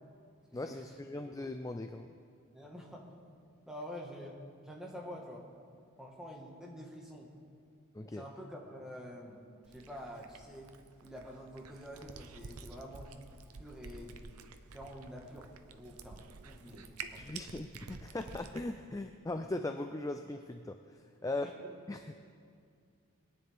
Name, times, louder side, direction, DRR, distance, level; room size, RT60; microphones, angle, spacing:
voice 1, 0.5-2.1 7.9-8.2 17.2-21.5 21.9-22.1, left 2 dB, 15° left, 7 dB, 0.3 m, -39 dB
voice 2, 2.5-3.2 3.7-4.4 4.6-5.5 6.0-7.3 8.1-9.4 9.7-10.7 11.0-13.2 13.6-14.2 14.7-17.2 21.2-21.7, equal, 5° right, -2 dB, 1.5 m, -47 dB
Cat, 9.6-18.6, right 4 dB, 90° right, 0.7 m, -50 dB
22.0 x 9.8 x 3.5 m, 2.2 s
head